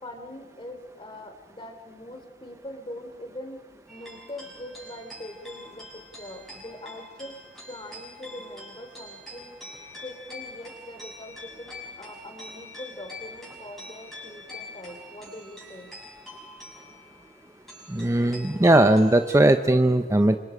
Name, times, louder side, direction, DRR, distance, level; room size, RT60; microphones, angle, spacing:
voice 1, 0.0-9.5 10.0-15.9 18.5-18.6, left 1 dB, 30° left, 5 dB, 3.1 m, -42 dB
sound 1, 3.9-19.5, left 1 dB, ahead, 7.1 m, -45 dB
voice 2, 17.9-20.4, right 1 dB, 15° right, 8 dB, 0.7 m, -19 dB
28.0 x 26.0 x 5.0 m, 1.2 s
head